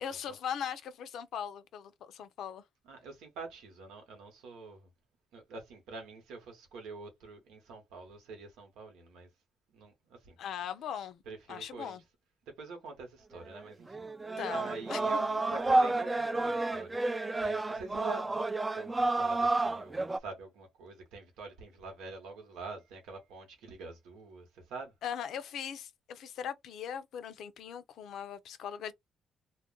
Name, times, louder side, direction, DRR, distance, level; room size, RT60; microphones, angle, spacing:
voice 1, 0.0-2.6 10.4-11.2 11.5-12.0 14.4-15.2 25.0-28.9, left 8 dB, 75° left, 0.5 m, -39 dB
voice 2, 2.9-4.9 5.3-9.3 9.7-10.4 11.3-12.0 12.6-14.0 14.5-16.9 17.4-18.2 18.7-24.9, right 3 dB, 90° right, 1.0 m, -46 dB
sound 1, 13.5-13.6 13.9-20.2, right 2 dB, 20° right, 0.3 m, -30 dB
2.4 x 2.1 x 3.7 m
cardioid pair, 90°, 0 cm